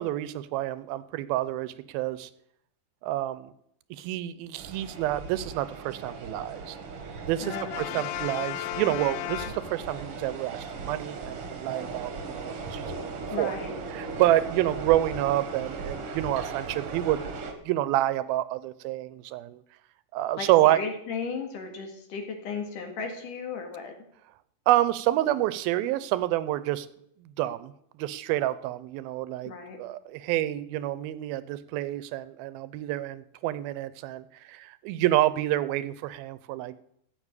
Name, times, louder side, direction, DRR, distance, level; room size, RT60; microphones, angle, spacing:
voice 1, 0.0-2.3 3.0-3.5 3.9-6.8 7.3-13.6 13.9-17.2 17.6-19.6 20.1-20.8 24.7-26.9 27.4-27.7 28.0-29.5 29.8-36.8, right 14 dB, 85° right, 15 dB, 2.5 m, -28 dB
sound 1, 4.6-17.5, right 4 dB, 50° right, 1.9 m, -38 dB
voice 2, 7.4-8.1 13.3-13.7 20.4-23.9 29.4-29.8, left 5 dB, 65° left, 3 dB, 3.3 m, -35 dB
Brass instrument, 7.5-10.2, left 14 dB, 80° left, 2.3 m, -35 dB
13.5 x 6.9 x 8.2 m, 0.73 s
omnidirectional pair, 4.3 m